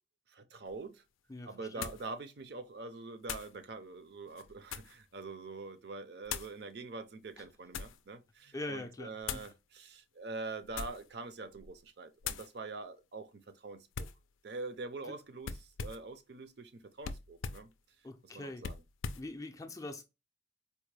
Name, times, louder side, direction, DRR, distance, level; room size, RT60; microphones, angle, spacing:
voice 1, 0.3-1.0 1.5-14.1 14.4-17.7 18.3-18.8, right 3 dB, 55° right, 0.5 m, -44 dB
sound 1, 0.7-0.8 1.8-2.1 3.2-3.6 4.3-5.0 6.2-6.6 7.3-8.0 9.2-9.5 10.6-11.1 11.5-11.8 12.2-12.5 13.9-14.2 15.4-16.1 17.0-17.7 18.6-19.3, left 6 dB, 85° left, 0.4 m, -41 dB
voice 2, 1.3-1.9 8.5-9.4 15.1-15.2 18.0-18.6 19.1-20.0, left 2 dB, 15° left, 0.4 m, -43 dB
4.3 x 2.1 x 3.2 m
head